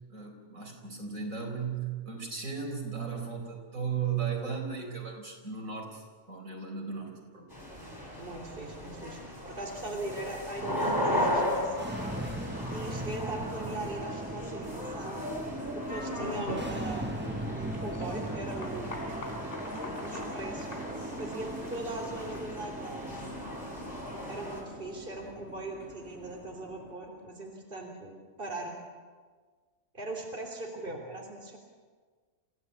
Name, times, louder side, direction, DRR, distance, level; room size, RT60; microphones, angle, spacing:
voice 1, 0.1-7.5, right 6 dB, 75° right, 1 dB, 4.8 m, -36 dB
sound 1, 7.5-24.6, left 1 dB, 15° left, 5.3 m, -37 dB
voice 2, 8.1-11.9 12.7-15.2 15.7-19.1 20.0-20.8 21.2-23.1 24.3-28.8 29.9-31.6, right 2 dB, 40° right, 0 dB, 3.5 m, -40 dB
sound 2, 11.6-26.9, right 1 dB, 10° right, 0.7 m, -40 dB
sound 3, 14.5-27.3, equal, 40° left, 4.3 m, -44 dB
28.0 x 16.0 x 8.4 m, 1.5 s
omnidirectional pair, 1.4 m